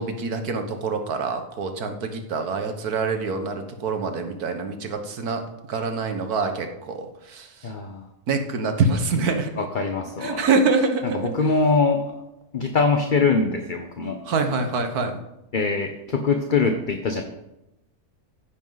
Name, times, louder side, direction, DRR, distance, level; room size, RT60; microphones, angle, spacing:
voice 1, 0.0-5.4 5.7-7.7 8.3-9.5 10.2-11.3 14.2-15.2, right 4 dB, 85° right, 6 dB, 1.7 m, -25 dB
voice 2, 7.6-8.1 9.6-10.4 11.0-12.2 12.5-14.2 15.5-17.2, left 4 dB, 40° left, 5 dB, 0.9 m, -23 dB
15.0 x 10.0 x 4.0 m, 0.90 s
omnidirectional pair, 1.6 m